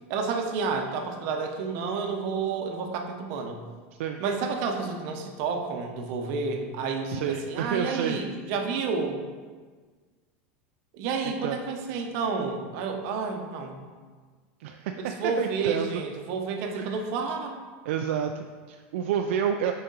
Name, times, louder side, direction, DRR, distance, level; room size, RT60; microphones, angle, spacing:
voice 1, 0.1-3.6 4.2-9.2 10.9-13.8 15.0-17.6, right 4 dB, 55° right, 4 dB, 0.8 m, -30 dB
voice 2, 7.0-8.2 11.4-11.6 14.6-15.0 15.2-16.0 16.8-17.0 17.8-19.8, right 8 dB, 75° right, 4 dB, 0.4 m, -29 dB
6.4 x 4.1 x 4.0 m, 1.5 s
supercardioid pair, 150°, 7 cm